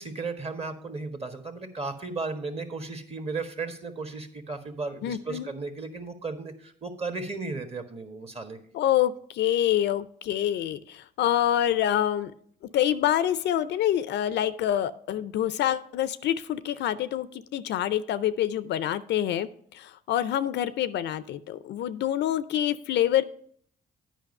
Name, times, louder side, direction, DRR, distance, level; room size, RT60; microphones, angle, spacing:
voice 1, 0.0-8.6, right 3 dB, 30° right, 7 dB, 1.4 m, -35 dB
voice 2, 5.0-5.5 8.7-12.3 12.7-19.5 19.7-23.2, left 11 dB, 65° left, 16 dB, 0.5 m, -26 dB
9.0 x 5.1 x 5.3 m, 0.62 s
supercardioid pair, 60°, 19 cm